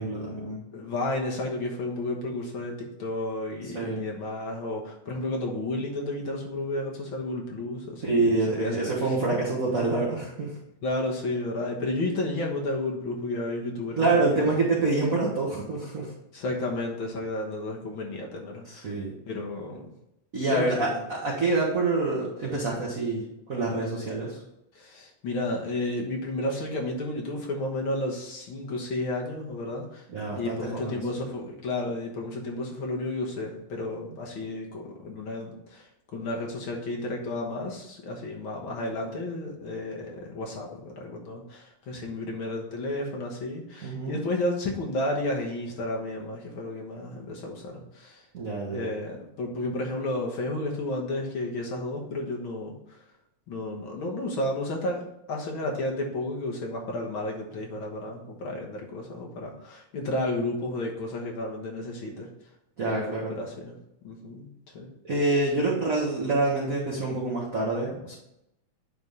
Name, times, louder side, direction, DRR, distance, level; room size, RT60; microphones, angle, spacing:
voice 1, 0.0-0.6 3.7-4.1 8.0-10.5 14.0-16.1 18.7-19.1 20.3-24.4 30.1-31.0 43.8-44.2 48.3-48.9 62.8-63.3 65.0-68.1, right 3 dB, 50° right, -4 dB, 1.0 m, -26 dB
voice 2, 0.7-8.2 8.6-9.1 10.8-14.5 16.3-18.9 19.3-19.9 20.5-21.0 24.7-48.2 48.7-53.0 53.5-62.3 62.8-63.8 64.0-64.5 64.7-64.9, left 2 dB, 55° left, -1 dB, 1.6 m, -32 dB
9.4 x 3.5 x 5.4 m, 0.84 s
omnidirectional pair, 3.4 m